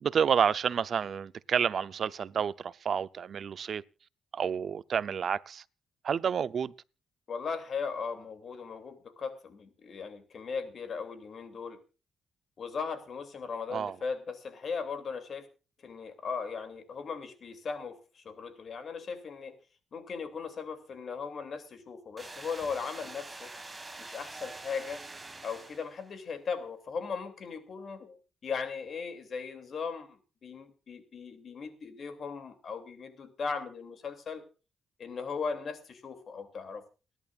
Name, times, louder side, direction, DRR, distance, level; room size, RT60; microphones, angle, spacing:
voice 1, 0.0-3.8 4.3-5.6 6.0-6.7 13.7-13.9, right 7 dB, 60° right, 0.6 m, -29 dB
voice 2, 7.3-11.8 12.6-15.5 15.8-19.6 19.9-23.5 24.0-25.0 25.4-28.2 28.4-34.4 35.0-36.8, left 5 dB, 55° left, 2.7 m, -38 dB
sound 1, 22.2-26.2, right 2 dB, 20° right, 1.9 m, -45 dB
30.0 x 11.0 x 2.5 m
cardioid pair, 80°, 0 cm